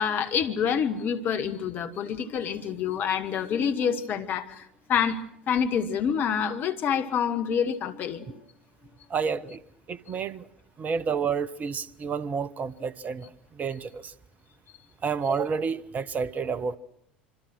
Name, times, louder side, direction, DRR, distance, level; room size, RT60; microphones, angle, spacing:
voice 1, 0.0-5.2 5.5-8.4, left 7 dB, 40° left, 1.7 m, -27 dB
voice 2, 9.1-9.6 9.9-10.5 10.8-14.1 15.0-16.8, right 6 dB, 30° right, 0.9 m, -30 dB
26.0 x 25.0 x 6.2 m
figure-of-eight pair, 70°, 5 cm